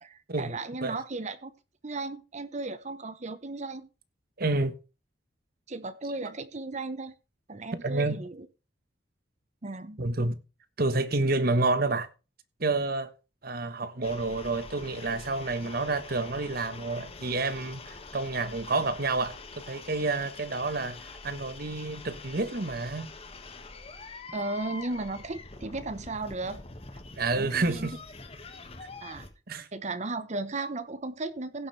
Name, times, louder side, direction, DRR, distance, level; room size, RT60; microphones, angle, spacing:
voice 1, 0.0-1.5 1.8-3.9 5.7-7.1 7.5-8.5 9.6-10.0 24.3-26.6 27.3-27.9 29.0-29.3 29.7-31.7, right 2 dB, 40° right, 0.9 m, -35 dB
voice 2, 4.4-4.7 7.8-8.2 10.0-10.4 10.8-12.1 12.6-13.1 13.4-23.1 27.2-27.9 29.5-29.7, right 3 dB, 55° right, 1.2 m, -29 dB
sound 1, 14.0-29.3, left 3 dB, 35° left, 1.6 m, -45 dB
16.5 x 7.6 x 3.2 m
head